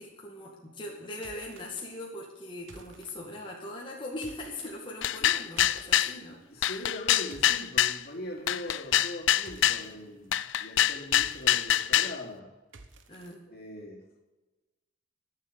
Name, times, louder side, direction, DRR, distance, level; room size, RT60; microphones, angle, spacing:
voice 1, 0.0-6.8 13.1-13.4, left 1 dB, 25° left, -3 dB, 2.1 m, -41 dB
sound 1, 1.2-1.7 2.6-3.1 4.1-4.7 5.6-5.9 6.9-7.7 9.4-9.9 11.0-11.7 12.7-13.3, right 3 dB, 85° right, 1.2 m, -51 dB
sound 2, 5.0-6.1 6.6-8.0 8.5-9.8 10.3-12.2, left 12 dB, 75° left, 0.5 m, -25 dB
voice 2, 6.5-12.5 13.5-14.3, left 1 dB, 55° left, -1 dB, 2.9 m, -41 dB
13.0 x 7.5 x 8.2 m, 1.1 s
head